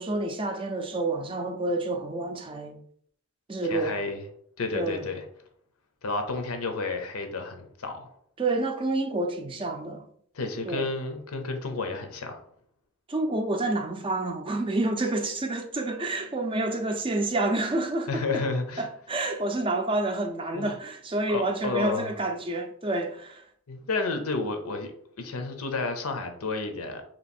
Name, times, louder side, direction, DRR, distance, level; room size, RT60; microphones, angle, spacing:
voice 1, 0.0-2.8 3.5-4.0 4.7-5.1 8.4-10.0 10.6-10.9 13.1-18.4 18.8-23.4, right 2 dB, 25° right, 0.4 m, -29 dB
voice 2, 3.7-4.2 4.6-5.2 6.0-8.1 10.3-12.4 18.1-18.9 20.5-20.7 21.3-22.1 23.7-24.9 25.2-27.0, left 3 dB, 90° left, 0.7 m, -31 dB
3.1 x 3.0 x 4.3 m
head